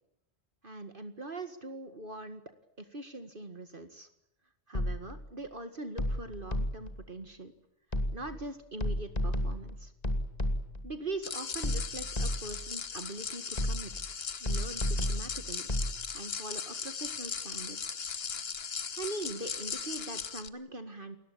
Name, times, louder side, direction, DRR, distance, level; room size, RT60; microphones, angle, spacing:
voice 1, 0.6-2.4 2.8-4.1 4.7-7.5 8.1-9.9 10.8-14.1 14.4-15.7 16.1-18.0 19.0-21.2, right 2 dB, 50° right, 8 dB, 2.1 m, -42 dB
sound 1, 4.7-5.3 6.0-7.0 7.9-8.4 8.8-10.9 11.6-12.7 13.6-14.1 14.5-16.0, left 1 dB, 35° left, 2.9 m, -32 dB
sound 2, 11.2-20.5, left 6 dB, 60° left, 1.4 m, -38 dB
29.0 x 21.5 x 8.5 m, 0.80 s
omnidirectional pair, 1.2 m